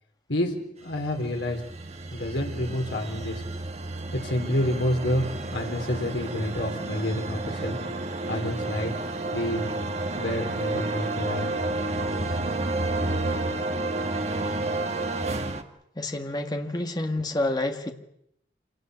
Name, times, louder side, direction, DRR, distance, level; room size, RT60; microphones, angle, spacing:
voice 1, 0.3-1.6 2.1-3.4 4.1-5.2 5.5-7.8 8.3-8.9 9.3-9.6 10.2-11.5, left 1 dB, 85° left, 2 dB, 3.9 m, -28 dB
sound 1, 0.9-15.6, right 2 dB, 35° right, 1.5 m, -31 dB
voice 2, 16.0-17.9, left 2 dB, 20° left, 5 dB, 1.7 m, -28 dB
26.5 x 18.5 x 8.0 m, 0.78 s
head